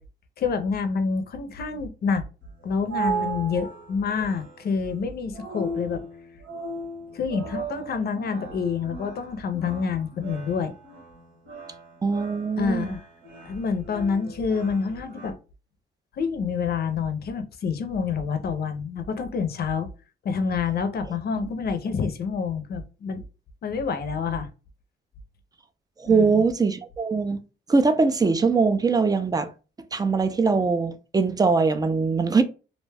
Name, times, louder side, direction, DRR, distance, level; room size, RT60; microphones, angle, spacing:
voice 1, 0.4-2.2 2.6-6.0 7.1-10.7 12.6-13.0 13.4-15.4 16.2-19.9 20.2-23.2 23.6-24.5 26.1-26.4, left 5 dB, 55° left, 0.6 m, -27 dB
sound 1, 2.4-15.3, right 4 dB, 80° right, 1.2 m, -37 dB
voice 2, 12.0-12.9 21.4-21.5 26.0-27.4 27.7-29.5 29.9-32.4, right 4 dB, 20° right, 0.4 m, -22 dB
2.5 x 2.2 x 3.3 m
cardioid pair, 90°, 20 cm